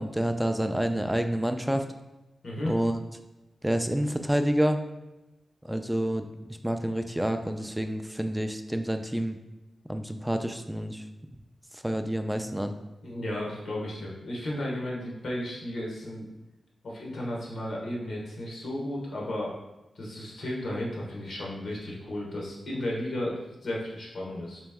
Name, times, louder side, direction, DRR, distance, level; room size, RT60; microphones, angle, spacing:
voice 1, 0.0-1.8 2.6-3.0 3.6-4.8 5.6-6.3 6.6-9.4 9.9-11.0 11.7-12.7, equal, 5° right, 6 dB, 0.3 m, -28 dB
voice 2, 2.4-2.7 13.0-16.3 16.8-19.5 20.0-24.6, left 1 dB, 75° left, -3 dB, 1.1 m, -34 dB
3.4 x 3.0 x 3.5 m, 1.0 s
cardioid pair, 75°, 0 cm